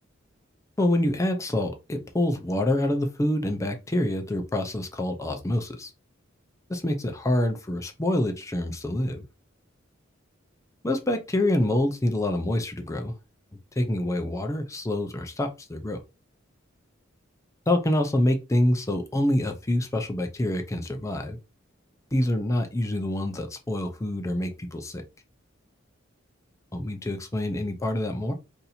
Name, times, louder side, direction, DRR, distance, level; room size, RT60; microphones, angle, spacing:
voice 1, 0.8-5.9 6.7-9.2 10.8-13.1 13.8-16.0 17.7-21.4 22.1-25.0 26.7-28.3, left 1 dB, 15° left, 0.5 m, -26 dB
2.7 x 2.6 x 4.1 m
head